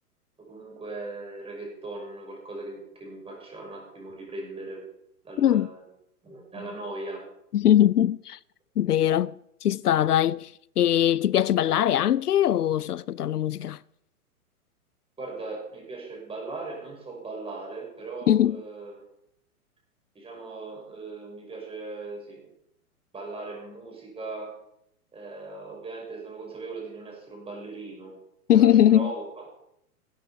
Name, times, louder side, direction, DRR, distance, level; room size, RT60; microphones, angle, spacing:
voice 1, 0.5-4.8 5.2-5.8 6.2-7.3 15.2-18.9 20.1-22.4 23.1-24.5 25.1-28.1 28.5-29.5, right 3 dB, 10° right, 6.2 m, -38 dB
voice 2, 5.4-5.7 7.5-8.4 8.8-13.8 18.3-18.6 28.5-29.1, left 11 dB, 85° left, 0.6 m, -21 dB
16.0 x 13.5 x 5.1 m
hypercardioid pair, 115°, 45 cm